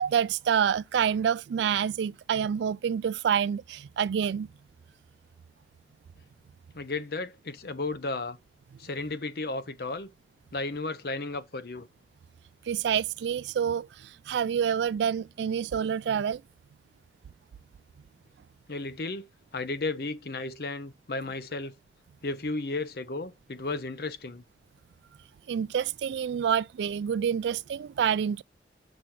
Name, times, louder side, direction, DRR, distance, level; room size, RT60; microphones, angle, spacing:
voice 1, 0.0-4.5 12.7-13.9 14.3-16.4 25.5-28.4, right 8 dB, 75° right, 0.3 m, -27 dB
voice 2, 6.7-8.4 8.8-10.1 10.5-11.9 18.7-19.2 19.5-21.7 22.2-24.4, left 3 dB, 55° left, 0.7 m, -34 dB
6.2 x 5.1 x 4.4 m
head